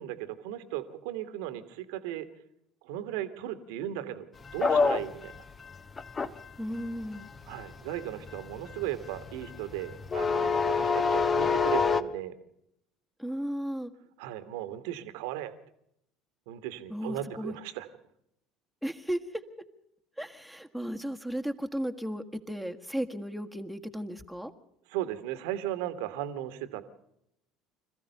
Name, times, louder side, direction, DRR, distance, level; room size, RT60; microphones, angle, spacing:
voice 1, 0.0-2.3 2.8-4.3 4.5-5.4 7.5-12.3 14.2-15.5 16.5-17.9 24.9-26.8, right 12 dB, 60° right, 12 dB, 1.6 m, -36 dB
sound 1, 4.5-12.0, left 5 dB, 25° left, 1.1 m, -28 dB
voice 2, 6.6-7.3 13.2-13.9 16.9-17.5 18.8-19.4 20.2-24.5, equal, ahead, 7 dB, 1.7 m, -35 dB
26.0 x 15.0 x 6.7 m, 0.77 s
figure-of-eight pair, 65°, 0 cm